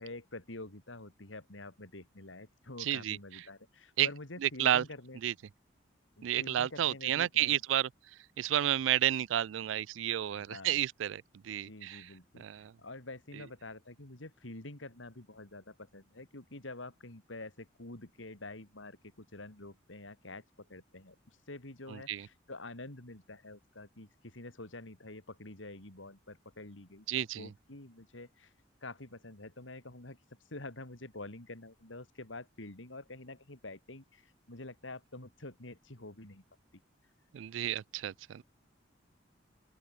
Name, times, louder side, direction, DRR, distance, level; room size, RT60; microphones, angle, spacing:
voice 1, 0.0-5.2 6.2-7.6 10.4-10.8 11.6-21.2 21.5-28.5 28.8-30.2 30.5-36.4, left 2 dB, 90° left, 3.3 m, -47 dB
voice 2, 2.8-3.4 4.0-4.1 4.4-4.8 5.2-5.3 6.2-7.9 8.4-12.1 12.4-12.7 21.9-22.3 27.1-27.5 37.3-38.4, right 11 dB, 85° right, 0.3 m, -31 dB
open air
head